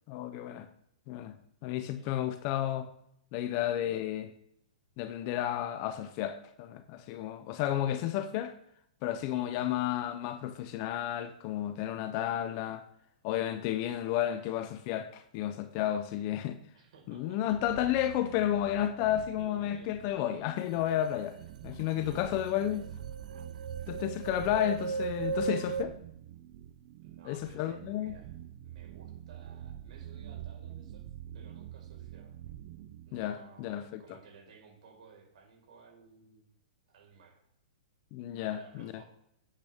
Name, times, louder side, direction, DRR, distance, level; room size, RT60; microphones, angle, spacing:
voice 1, 0.1-0.7 1.1-1.3 1.6-2.9 3.3-4.3 5.0-8.5 9.0-12.8 13.2-16.6 17.1-21.4 21.6-22.8 23.9-26.0 27.2-28.2 33.1-34.2 38.1-38.9, left 11 dB, 30° left, 0.5 m, -32 dB
voice 2, 1.7-2.1 9.3-9.7 16.7-17.4 19.3-20.2 22.0-22.8 24.4-24.6 27.0-28.3 28.6-31.1 31.3-32.3 33.1-36.5 36.9-37.4 38.3-39.0, right 5 dB, 60° right, 4.7 m, -56 dB
sound 1, 17.5-33.2, right 11 dB, 30° right, 0.5 m, -46 dB
sound 2, 21.8-21.9 22.1-25.8, right 5 dB, 85° right, 0.6 m, -36 dB
10.5 x 8.9 x 3.5 m
hypercardioid pair, 170°, 4 cm